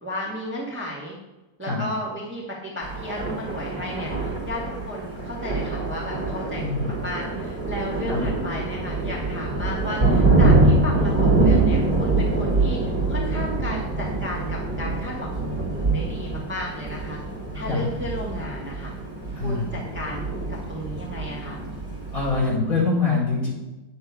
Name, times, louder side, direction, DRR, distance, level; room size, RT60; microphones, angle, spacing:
voice 1, 0.0-1.2 1.6-12.8 13.1-17.2 17.5-18.9 19.4-21.6, equal, 5° right, -3 dB, 1.6 m, -34 dB
Thunder, 2.8-22.6, right 2 dB, 25° right, 2.8 m, -24 dB
voice 2, 6.6-7.0 8.1-8.3 17.7-17.8 19.3-19.7 22.1-23.5, left 3 dB, 45° left, -6 dB, 4.8 m, -24 dB
10.0 x 7.8 x 4.7 m, 1.0 s
omnidirectional pair, 2.0 m